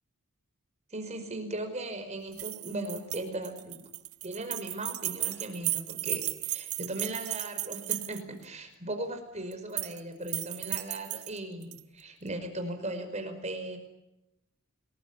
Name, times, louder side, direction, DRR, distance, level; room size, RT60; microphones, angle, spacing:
voice 1, 0.9-3.8 4.2-13.8, right 1 dB, 30° right, 7 dB, 5.1 m, -38 dB
sound 1, 2.3-8.4 9.5-10.0 10.3-11.8, right 17 dB, 85° right, 1.5 m, -35 dB
29.5 x 20.5 x 8.6 m, 0.93 s
head